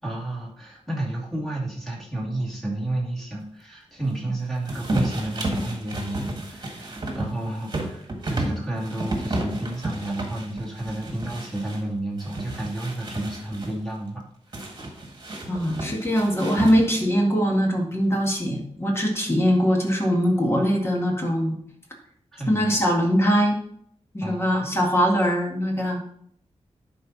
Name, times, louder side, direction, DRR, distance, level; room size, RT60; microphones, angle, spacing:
voice 1, 0.0-14.2 14.5-14.7 22.3-22.8 24.2-24.7, right 1 dB, ahead, -4 dB, 2.5 m, -31 dB
sound 1, 4.7-11.8 12.2-13.7 14.5-17.1, right 1 dB, 40° right, 1.7 m, -32 dB
voice 2, 15.5-21.6 22.5-23.6 24.1-26.0, equal, 20° left, 0 dB, 1.9 m, -22 dB
11.0 x 4.4 x 4.2 m, 0.66 s
wide cardioid pair, 145°, 11 cm